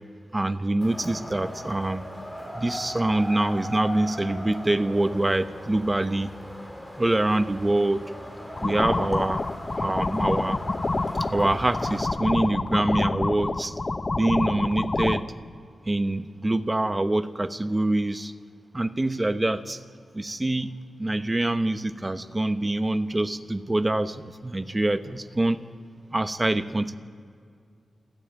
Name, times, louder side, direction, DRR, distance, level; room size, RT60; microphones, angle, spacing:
voice 1, 0.3-2.0 2.5-6.4 7.0-8.0 8.6-9.4 9.7-10.6 11.2-13.7 14.1-15.2 15.9-18.3 18.7-19.8 20.1-25.7 26.1-27.0, right 2 dB, 15° right, 11 dB, 0.9 m, -25 dB
Wind, 0.8-12.0, equal, ahead, 3.0 m, -39 dB
sound 1, 8.6-15.2, left 3 dB, 25° left, 0.7 m, -27 dB
28.0 x 12.5 x 9.2 m, 2.2 s
wide cardioid pair, 145°, 0 cm